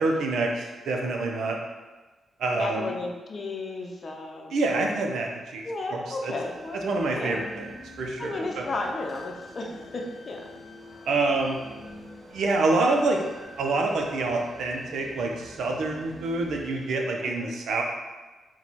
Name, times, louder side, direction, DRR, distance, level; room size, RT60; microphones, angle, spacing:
voice 1, 0.0-1.6 2.4-2.9 4.5-5.6 5.9-6.3 6.8-8.7 11.1-11.6 12.3-13.2 13.6-17.8, right 3 dB, 80° right, 1 dB, 0.6 m, -27 dB
voice 2, 2.5-4.6 5.6-6.8 7.1-7.4 8.2-10.4 17.2-17.5, left 2 dB, 45° left, 1 dB, 0.6 m, -33 dB
sound 1, 6.4-16.9, equal, 5° right, 1.4 m, -46 dB
4.4 x 2.3 x 4.1 m, 1.2 s
cardioid pair, 85°, 0 cm